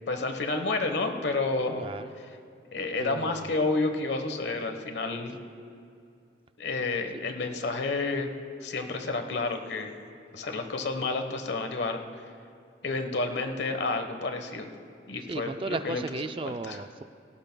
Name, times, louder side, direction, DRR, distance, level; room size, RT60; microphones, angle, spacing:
voice 1, 0.1-1.8 2.7-5.4 6.6-8.3 8.6-9.9 10.3-12.0 12.8-14.7 15.1-16.0 16.4-16.8, left 3 dB, 75° left, 6 dB, 1.2 m, -30 dB
voice 2, 1.8-2.1 3.0-3.5 15.3-17.0, right 3 dB, 30° right, 9 dB, 0.4 m, -35 dB
18.0 x 17.5 x 2.3 m, 2.5 s
head